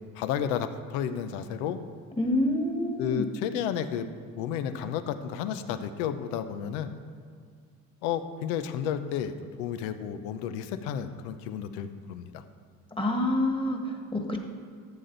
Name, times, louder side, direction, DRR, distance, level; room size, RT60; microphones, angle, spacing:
voice 1, 0.1-1.8 3.0-4.1 4.3-6.9 8.0-9.3 9.6-12.4, left 9 dB, 90° left, 10 dB, 0.8 m, -32 dB
voice 2, 2.2-3.3 13.0-14.4, left 1 dB, 15° left, 2 dB, 1.6 m, -27 dB
13.0 x 7.0 x 4.0 m, 2.2 s
supercardioid pair, 100°, 35 cm